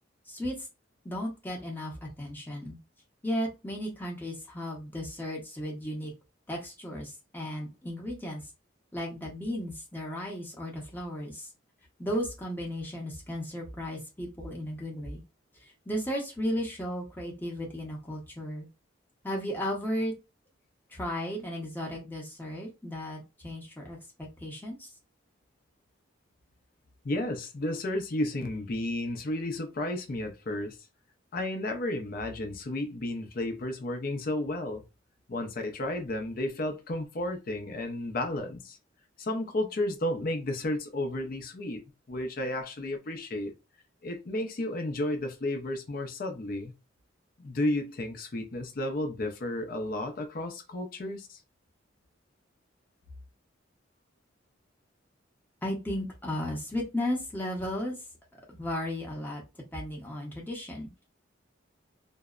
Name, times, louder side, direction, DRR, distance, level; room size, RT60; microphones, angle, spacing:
voice 1, 0.3-0.7 1.0-2.8 3.2-6.1 6.5-8.4 8.9-11.5 12.0-15.2 15.6-18.7 19.2-20.1 20.9-24.9 55.6-58.0 58.5-59.4 59.7-60.9, equal, 10° left, 0.7 m, -35 dB
voice 2, 27.0-30.8 31.3-34.8 35.3-38.8 39.2-41.8 42.1-43.5 44.0-46.7 47.4-51.4, left 1 dB, 45° left, 0.5 m, -32 dB
2.6 x 2.0 x 2.3 m
head